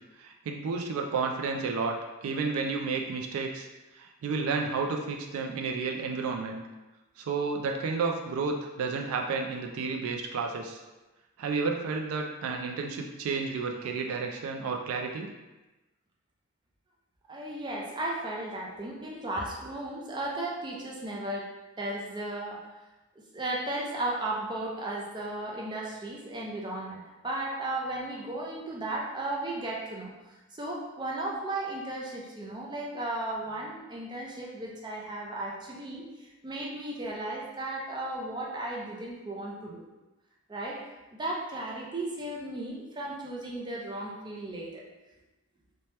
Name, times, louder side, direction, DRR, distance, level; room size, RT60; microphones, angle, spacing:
voice 1, 0.2-3.7 3.9-6.6 7.2-10.8 11.4-15.3, right 4 dB, 80° right, 2 dB, 0.3 m, -31 dB
voice 2, 17.3-21.5 21.8-22.6 23.3-27.0 27.2-39.8 40.5-40.8 41.1-44.8, right 2 dB, 20° right, -3 dB, 0.4 m, -35 dB
2.8 x 2.1 x 3.2 m, 1.1 s
head